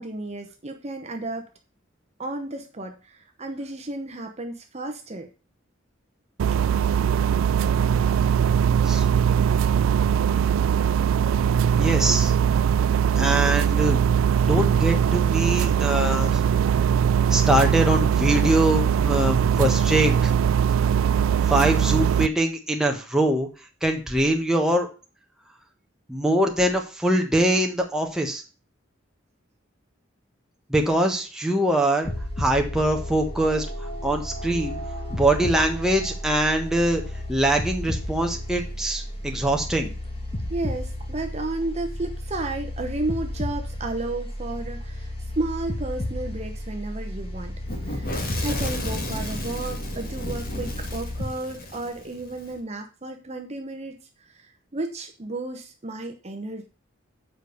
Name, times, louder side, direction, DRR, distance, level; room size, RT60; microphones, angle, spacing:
voice 1, 0.0-1.5 2.2-5.3 6.5-6.6 40.5-47.5 47.8-53.9 54.3-56.7, right 2 dB, 35° right, 4 dB, 0.9 m, -33 dB
sound 1, 6.4-22.3, right 8 dB, 85° right, 0.3 m, -21 dB
voice 2, 11.8-12.3 13.2-14.0 14.4-16.4 17.3-20.3 21.5-23.5 23.8-24.9 26.1-28.4 30.7-32.1 32.4-34.8 35.1-37.0 37.3-39.9, right 1 dB, 5° right, 2 dB, 1.3 m, -23 dB
sound 2, 32.0-51.3, left 1 dB, 30° left, 1.8 m, -33 dB
Fire / Explosion, 47.7-52.5, left 1 dB, 45° left, 2.0 m, -33 dB
7.4 x 5.0 x 6.9 m, 0.34 s
head